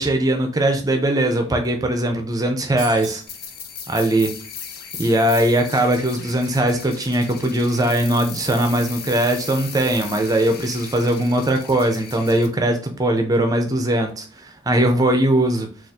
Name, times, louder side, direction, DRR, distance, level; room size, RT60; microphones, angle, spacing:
voice 1, 0.0-3.2 3.9-4.3 5.0-15.7, right 1 dB, 20° right, 5 dB, 0.4 m, -20 dB
sound 1, 2.8-3.4, right 3 dB, ahead, 1.0 m, -37 dB
sound 2, 3.3-12.5, left 7 dB, 50° left, 0.4 m, -37 dB
2.5 x 2.4 x 4.1 m, 0.40 s
head